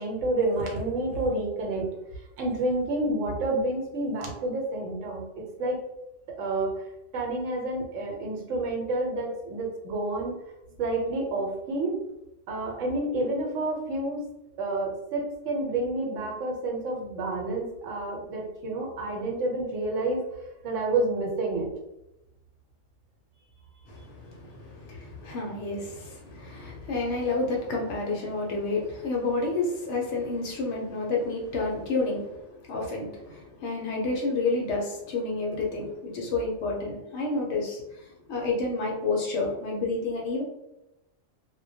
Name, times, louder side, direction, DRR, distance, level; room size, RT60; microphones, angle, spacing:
voice 1, 0.0-1.9 2.4-5.2 5.6-5.8 6.3-6.8 7.1-10.3 10.7-12.0 12.5-14.2 14.6-20.2 20.6-21.7, right 2 dB, 80° right, -1 dB, 1.0 m, -29 dB
voice 2, 23.9-40.4, left 3 dB, 70° left, -1 dB, 0.8 m, -30 dB
2.2 x 2.1 x 2.6 m, 0.91 s
omnidirectional pair, 1.3 m